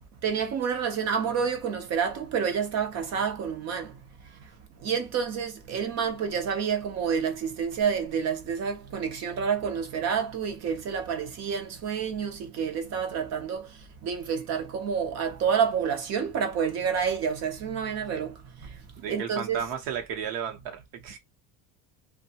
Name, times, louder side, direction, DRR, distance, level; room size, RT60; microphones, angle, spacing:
voice 1, 0.2-4.0 4.3-4.4 4.8-18.8 19.1-19.6, right 7 dB, 35° right, 0.7 m, -29 dB
voice 2, 19.0-21.2, right 8 dB, 60° right, 1.0 m, -34 dB
2.7 x 2.3 x 2.8 m
cardioid pair, 160°, 44 cm